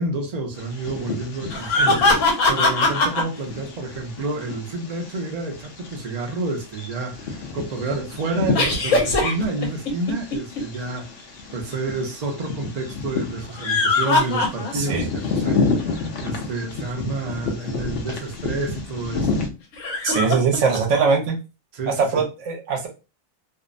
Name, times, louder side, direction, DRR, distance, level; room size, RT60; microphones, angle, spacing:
voice 1, 0.0-19.5 21.7-22.3, right 3 dB, 45° right, 0.5 m, -29 dB
Bird vocalization bird call bird song, 0.6-19.5, left 4 dB, 60° left, 0.7 m, -31 dB
sound 1, 1.5-3.2 8.5-10.6 13.4-15.0 15.4-15.5 17.8-17.9 19.7-20.8, left 3 dB, 80° left, 1.1 m, -21 dB
voice 2, 14.7-15.1 20.0-21.4 21.9-22.9, right 5 dB, 70° right, 1.0 m, -21 dB
2.6 x 2.0 x 2.5 m
omnidirectional pair, 1.3 m